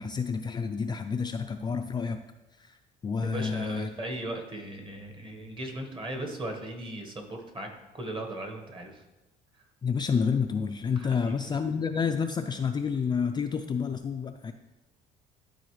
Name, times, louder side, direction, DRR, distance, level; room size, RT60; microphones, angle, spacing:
voice 1, 0.0-2.2 2.6-2.8 3.0-3.9 9.8-14.5, left 6 dB, 25° left, 6 dB, 0.3 m, -29 dB
voice 2, 3.2-9.0 9.5-9.6 11.0-11.5, right 1 dB, 30° right, 3 dB, 1.4 m, -38 dB
12.0 x 4.1 x 3.2 m, 1.0 s
cardioid pair, 110°, 17 cm